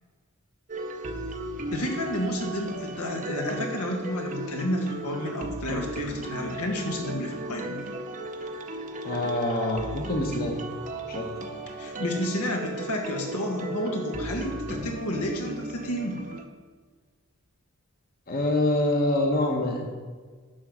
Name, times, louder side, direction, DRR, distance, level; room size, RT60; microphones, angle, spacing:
sound 1, 0.7-16.4, right 1 dB, 35° right, 0.7 m, -36 dB
voice 1, 1.7-7.8 11.8-16.2, left 1 dB, 85° left, 2 dB, 1.6 m, -30 dB
voice 2, 9.0-10.6 11.1-11.4 18.3-19.8, left 1 dB, 40° left, 1 dB, 1.1 m, -26 dB
11.0 x 3.9 x 7.3 m, 1.5 s
head